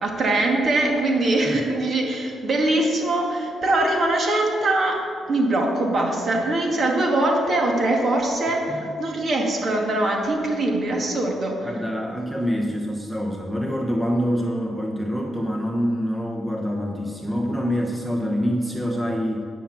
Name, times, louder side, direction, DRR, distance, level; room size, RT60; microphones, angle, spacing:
voice 1, 0.0-5.0 5.3-11.7, right 2 dB, 45° right, 0 dB, 2.1 m, -22 dB
voice 2, 11.6-19.4, equal, 5° right, 0 dB, 1.0 m, -26 dB
10.0 x 6.0 x 7.2 m, 2.4 s
cardioid pair, 90°, 0 cm